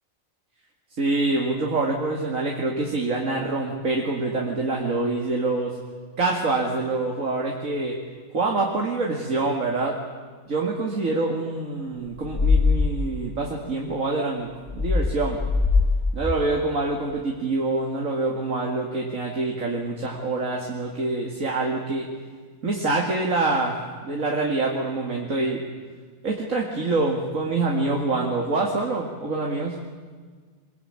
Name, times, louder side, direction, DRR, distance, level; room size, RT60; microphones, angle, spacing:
voice 1, 1.0-5.8 6.2-8.0 8.3-10.0 10.5-15.4 16.1-22.1 22.6-25.6 26.2-29.7, right 3 dB, 75° right, 0 dB, 2.7 m, -26 dB
sound 1, 12.2-12.9 14.7-15.9 16.2-16.3, left 4 dB, 20° left, 1.9 m, -20 dB
23.5 x 21.0 x 8.9 m, 1.5 s
omnidirectional pair, 1.4 m